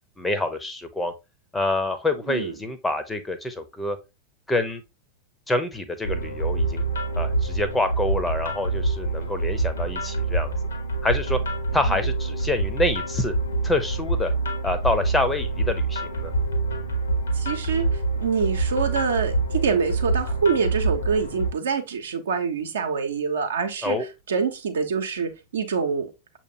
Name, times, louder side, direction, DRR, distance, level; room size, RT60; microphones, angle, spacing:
voice 1, 0.2-1.1 1.5-4.0 4.5-4.8 5.5-6.8 7.2-10.5 11.0-11.4 11.7-13.3 13.6-14.3 14.6-16.3 23.8-24.1, left 2 dB, 10° left, 0.7 m, -26 dB
sound 1, 6.0-21.5, right 3 dB, 70° left, 1.1 m, -26 dB
voice 2, 17.4-24.0 24.3-26.1, right 5 dB, 65° right, 0.8 m, -25 dB
6.5 x 3.0 x 2.7 m
figure-of-eight pair, 90°, 0 cm